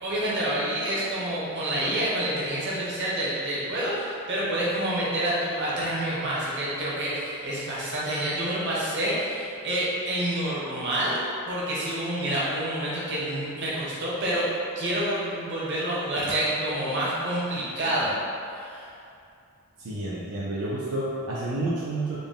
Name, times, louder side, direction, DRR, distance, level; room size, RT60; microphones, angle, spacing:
voice 1, 0.0-11.2 11.5-14.4 14.7-18.1 18.5-18.9, right 1 dB, 55° right, -7 dB, 0.9 m, -28 dB
voice 2, 19.8-22.2, right 2 dB, 80° right, -7 dB, 0.5 m, -30 dB
3.9 x 2.2 x 3.6 m, 2.5 s
head